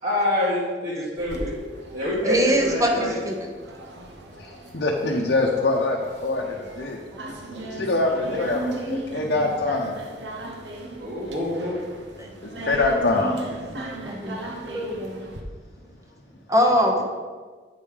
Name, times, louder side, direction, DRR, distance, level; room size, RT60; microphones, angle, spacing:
voice 1, 0.0-1.5 1.9-3.2 11.0-11.8, left 1 dB, 45° right, -6 dB, 1.5 m, -26 dB
sound 1, 1.2-15.4, right 2 dB, 70° right, 1.0 m, -37 dB
voice 2, 2.2-3.3 7.6-7.7 12.2-12.3 14.0-14.4 14.6-15.2 16.5-17.0, equal, 20° right, 2 dB, 1.0 m, -22 dB
voice 3, 4.4-7.0 7.7-10.0 12.4-13.4 13.7-13.8, left 2 dB, 65° left, -2 dB, 0.8 m, -24 dB
8.2 x 5.3 x 5.0 m, 1.5 s
head